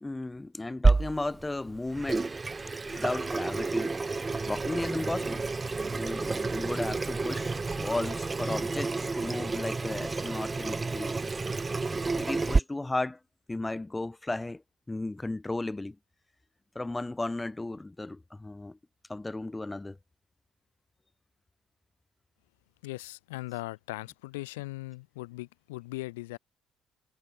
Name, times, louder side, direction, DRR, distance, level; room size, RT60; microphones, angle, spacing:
voice 1, 0.0-2.3 2.9-4.0 4.5-5.4 5.9-11.2 12.1-13.2 13.5-14.6 14.9-16.0 16.8-18.8 19.1-20.0, left 2 dB, 15° left, 1.9 m, -34 dB
Water tap faucet / Sink (filling or washing), 0.8-12.6, right 3 dB, 25° right, 0.3 m, -30 dB
voice 2, 22.8-26.4, left 21 dB, 80° left, 2.1 m, -39 dB
hypercardioid pair, 50°, 0 cm